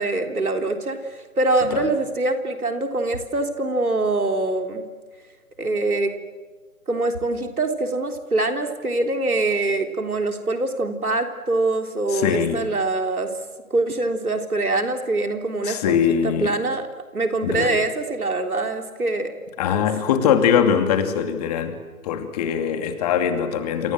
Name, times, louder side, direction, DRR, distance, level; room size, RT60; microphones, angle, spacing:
voice 1, 0.0-4.8 5.6-6.1 6.9-13.3 13.7-16.9 17.1-19.3 19.7-19.9, right 2 dB, 80° right, 5 dB, 3.7 m, -24 dB
voice 2, 12.1-12.6 15.6-16.5 17.4-17.8 19.6-21.8 22.0-23.9, left 8 dB, 25° left, 7 dB, 2.6 m, -22 dB
28.0 x 28.0 x 7.7 m, 1.4 s
figure-of-eight pair, 140°, 43 cm